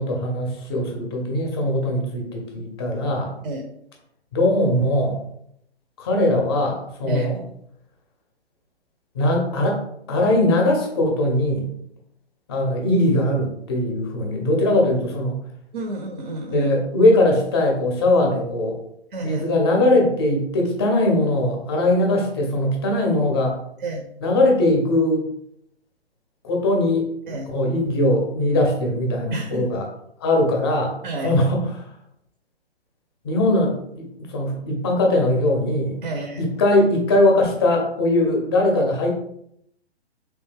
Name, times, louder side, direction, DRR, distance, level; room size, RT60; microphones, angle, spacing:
voice 1, 0.0-3.3 4.3-5.2 6.0-7.4 9.1-9.8 10.1-11.7 12.5-15.4 16.5-18.8 19.2-23.6 24.2-25.2 26.4-29.8 30.2-30.9 31.2-31.9 33.2-36.0 36.4-39.1, left 1 dB, 25° left, 1 dB, 0.6 m, -20 dB
voice 2, 15.7-16.7 19.1-19.5 23.8-24.1 27.3-27.5 29.3-29.7 31.0-31.3 36.0-36.4, right 2 dB, 50° right, 3 dB, 0.6 m, -29 dB
3.2 x 2.6 x 3.4 m, 0.74 s
figure-of-eight pair, 125°, 33 cm